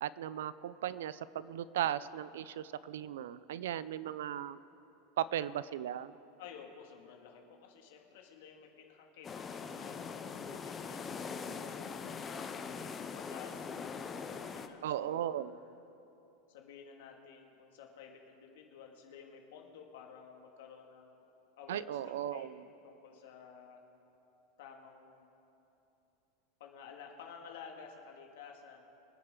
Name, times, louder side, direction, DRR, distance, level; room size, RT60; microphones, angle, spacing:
voice 1, 0.0-4.6 5.2-6.1 14.8-15.5 21.7-22.6, right 11 dB, 85° right, 17 dB, 0.5 m, -37 dB
voice 2, 6.4-10.0 10.5-15.8 16.5-21.3 21.6-23.8 24.6-25.3 26.6-28.9, left 6 dB, 65° left, 2 dB, 2.1 m, -53 dB
sound 1, 9.2-14.7, left 5 dB, 15° left, 0.6 m, -42 dB
24.5 x 9.9 x 3.8 m, 3.0 s
supercardioid pair, 175°, 0 cm